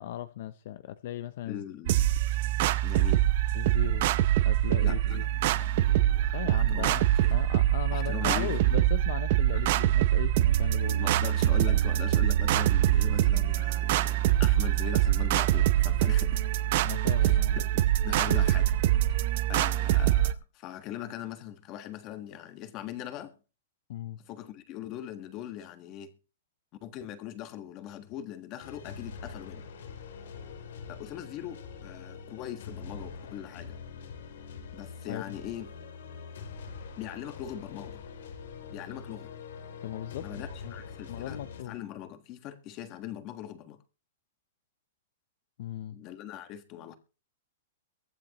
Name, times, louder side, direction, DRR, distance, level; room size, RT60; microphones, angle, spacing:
voice 1, 0.0-1.6 3.5-4.1 4.4-5.2 6.3-7.0 7.3-11.0 16.8-17.6 23.9-24.2 35.1-35.4 39.8-40.3 40.6-40.7 41.1-41.7 45.6-46.0, left 12 dB, 50° left, 0.6 m, -38 dB
voice 2, 1.5-2.1 2.8-3.3 4.8-6.9 7.2-7.3 7.9-8.7 9.5-9.6 10.9-16.4 17.2-18.8 19.1-19.2 19.5-23.3 24.2-26.1 26.8-29.6 30.9-33.8 34.7-35.7 37.0-38.0 38.7-39.3 40.2-41.4 41.7-43.8 45.9-47.0, left 11 dB, 25° left, 1.4 m, -41 dB
sound 1, 1.9-20.3, right 13 dB, 45° right, 0.6 m, -24 dB
sound 2, 28.6-41.6, left 5 dB, 75° left, 3.0 m, -44 dB
23.0 x 8.8 x 3.0 m
supercardioid pair, 170°, 0 cm